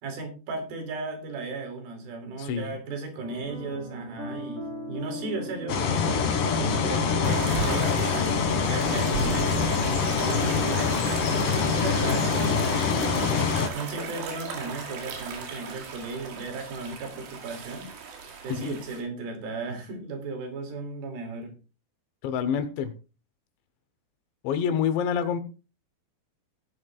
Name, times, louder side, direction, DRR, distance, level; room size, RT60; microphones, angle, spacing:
voice 1, 0.0-11.1 11.6-13.3 13.7-17.9 18.4-21.5, right 3 dB, 60° right, 4 dB, 4.3 m, -36 dB
voice 2, 2.4-2.8 18.5-18.8 22.2-22.9 24.4-25.4, left 8 dB, 85° left, 10 dB, 3.4 m, -27 dB
sound 1, 3.2-9.4, right 1 dB, 35° right, 3.4 m, -40 dB
sound 2, 5.7-13.7, left 5 dB, 60° left, 2.9 m, -25 dB
sound 3, 7.2-19.0, right 5 dB, 85° right, 4.3 m, -36 dB
17.0 x 11.0 x 2.4 m, 0.32 s
omnidirectional pair, 5.0 m